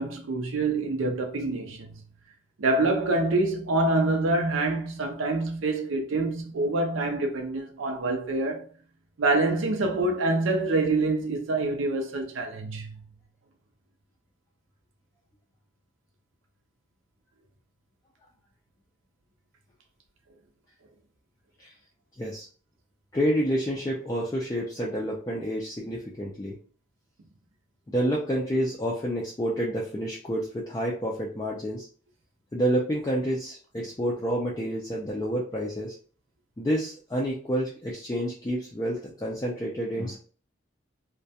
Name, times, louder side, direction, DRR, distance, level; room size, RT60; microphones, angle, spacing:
voice 1, 0.0-1.9 2.6-8.7 9.2-13.0, right 2 dB, 80° right, 0.5 m, -26 dB
voice 2, 23.1-26.5 27.9-31.9 32.5-36.0 36.6-40.2, equal, 20° left, 0.3 m, -29 dB
2.3 x 2.1 x 2.7 m
head